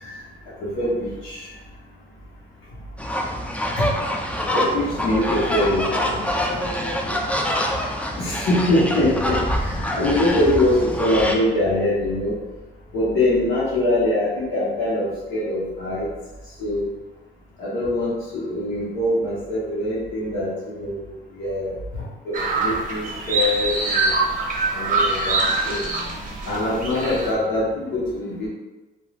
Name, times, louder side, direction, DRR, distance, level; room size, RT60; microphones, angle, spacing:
voice 1, 0.6-1.5 3.8-3.9 4.5-5.9 8.2-12.4 12.9-16.1 16.6-16.9 17.6-21.7 22.2-24.1 24.7-25.4 25.7-25.8 26.5-28.5, left 1 dB, 85° left, -8 dB, 1.0 m, -23 dB
sound 1, 3.0-11.4, equal, 5° left, 0.3 m, -25 dB
voice 2, 5.0-7.3, left 2 dB, 30° left, -7 dB, 1.3 m, -34 dB
sound 2, 22.3-27.3, right 3 dB, 40° right, 0.6 m, -24 dB
3.1 x 2.3 x 2.4 m, 1.2 s
cardioid pair, 90°, 20 cm